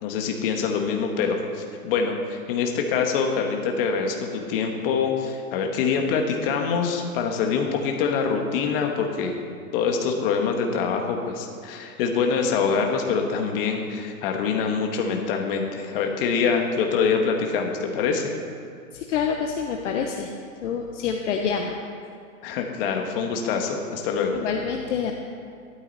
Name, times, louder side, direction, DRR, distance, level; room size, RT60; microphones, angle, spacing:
voice 1, 0.0-9.3 9.7-18.3 22.4-24.4, left 5 dB, 40° left, 3 dB, 1.6 m, -25 dB
voice 2, 18.9-20.3 20.6-21.7 24.3-25.1, left 7 dB, 55° left, 2 dB, 1.1 m, -27 dB
13.0 x 12.5 x 4.2 m, 2.4 s
hypercardioid pair, 155°, 43 cm